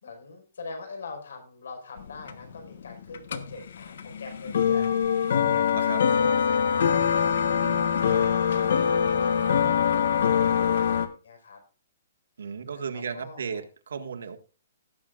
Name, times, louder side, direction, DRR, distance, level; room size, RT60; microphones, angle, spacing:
voice 1, 0.0-11.6 12.7-13.6, left 3 dB, 85° left, 4 dB, 4.8 m, -43 dB
sound 1, 2.0-11.1, left 7 dB, 60° left, 1.2 m, -24 dB
voice 2, 12.4-14.4, right 6 dB, 90° right, 5 dB, 1.7 m, -35 dB
17.5 x 7.7 x 2.5 m, 0.35 s
hypercardioid pair, 175°, 0 cm